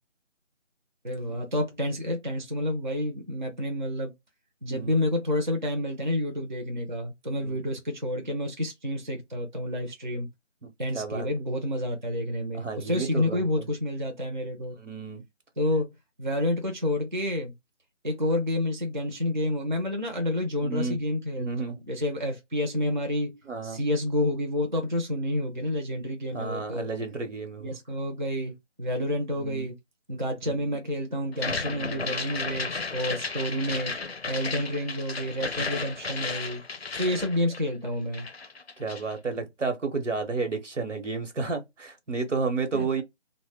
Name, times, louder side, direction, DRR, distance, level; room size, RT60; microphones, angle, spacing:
voice 1, 1.0-4.1 4.6-10.3 10.8-14.8 15.6-15.8 16.2-17.5 18.0-26.9 27.6-29.8 30.1-34.0 34.3-36.6 37.0-38.3 42.7-43.0, left 1 dB, 40° right, 0.5 m, -29 dB
voice 2, 10.9-11.3 12.5-13.5 14.8-15.2 20.6-21.0 21.4-21.8 23.5-23.8 26.3-27.8 29.4-29.7 30.5-30.8 31.7-32.2 38.8-43.0, right 4 dB, 90° right, 0.9 m, -32 dB
sound 1, 31.3-37.9 38.1-39.1, left 4 dB, 60° left, 0.5 m, -34 dB
2.1 x 2.0 x 3.2 m
figure-of-eight pair, 160°, 36 cm